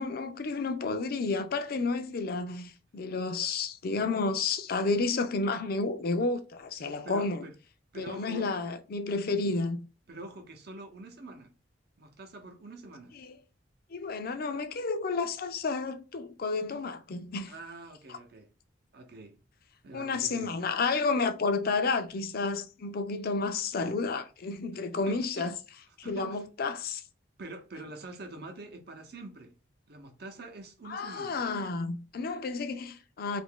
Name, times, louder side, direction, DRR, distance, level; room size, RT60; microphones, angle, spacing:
voice 1, 0.0-7.4 8.0-9.8 13.2-13.4 13.9-17.5 19.9-25.5 26.0-27.0 30.9-33.4, left 3 dB, 55° left, 0.5 m, -31 dB
voice 2, 7.0-7.5 7.9-8.5 10.1-11.5 12.0-13.1 17.5-18.5 18.9-19.4 19.8-20.5 25.0-25.5 26.0-26.5 27.4-29.5 29.9-31.4, right 2 dB, 60° right, 0.7 m, -45 dB
2.7 x 2.5 x 3.7 m
head